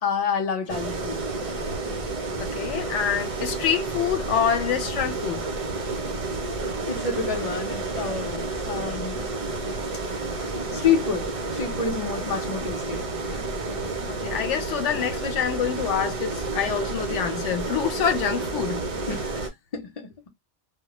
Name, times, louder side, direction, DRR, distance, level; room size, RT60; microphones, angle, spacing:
voice 1, 0.0-1.2 6.9-9.2 9.6-9.8 10.7-13.4 19.1-20.3, left 6 dB, 40° left, 0.8 m, -29 dB
sound 1, 0.7-19.5, right 3 dB, 45° right, 0.5 m, -30 dB
voice 2, 2.4-5.4 14.0-18.8, left 8 dB, 85° left, 0.9 m, -26 dB
2.2 x 2.1 x 2.9 m
omnidirectional pair, 1.2 m